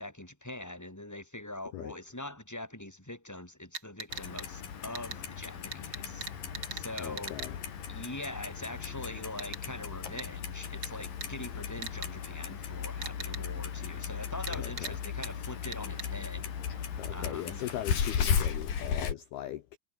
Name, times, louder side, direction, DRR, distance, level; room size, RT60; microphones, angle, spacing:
voice 1, 0.0-6.3 6.7-7.4 7.9-17.6, left 1 dB, 5° left, 5.8 m, -43 dB
sound 1, 3.7-4.5 4.9-5.2 5.7-7.5 9.4-9.6 10.2-10.3 10.8-10.9 11.2-11.3 11.8-12.1 13.0-13.4 14.5-14.9 15.2-15.3 15.7-16.1, right 5 dB, 35° right, 1.7 m, -40 dB
Clock, 4.1-19.1, left 7 dB, 50° left, 4.5 m, -36 dB
voice 2, 7.0-7.6 14.5-15.0 17.0-19.8, left 13 dB, 70° left, 2.9 m, -39 dB
omnidirectional pair, 5.3 m